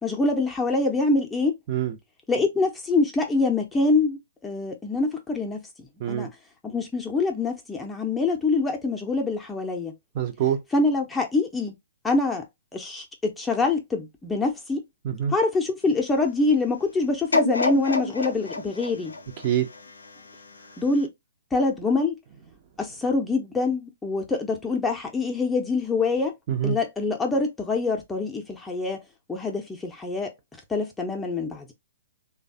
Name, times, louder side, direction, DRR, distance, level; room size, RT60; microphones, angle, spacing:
voice 1, 0.0-1.5 2.3-5.6 6.1-6.3 6.6-9.9 10.7-11.8 12.0-12.4 12.7-14.8 15.3-19.1 20.8-21.1 21.5-22.2 22.8-26.3 26.6-29.0 29.3-31.7, left 3 dB, 10° left, 0.7 m, -25 dB
voice 2, 10.1-10.6 15.0-15.3 19.4-19.7 26.5-26.8, right 10 dB, 40° right, 0.7 m, -25 dB
sound 1, 17.3-20.4 20.9-21.0, left 2 dB, 85° left, 0.5 m, -28 dB
3.2 x 2.2 x 2.7 m
figure-of-eight pair, 120°, 0 cm